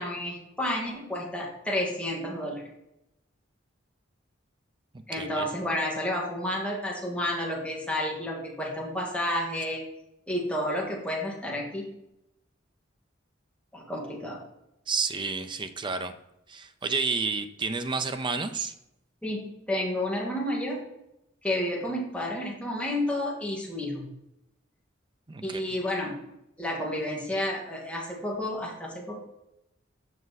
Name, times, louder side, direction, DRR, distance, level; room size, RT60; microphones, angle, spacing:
voice 1, 0.0-2.6 5.1-9.8 10.3-11.9 13.7-14.4 19.2-20.8 21.4-24.1 25.4-26.2 26.6-29.2, left 1 dB, 5° left, -3 dB, 1.8 m, -31 dB
voice 2, 5.2-5.5 14.9-16.1 16.5-18.7 25.3-25.6, right 4 dB, 25° right, 9 dB, 0.5 m, -30 dB
7.2 x 6.0 x 4.1 m, 0.86 s
head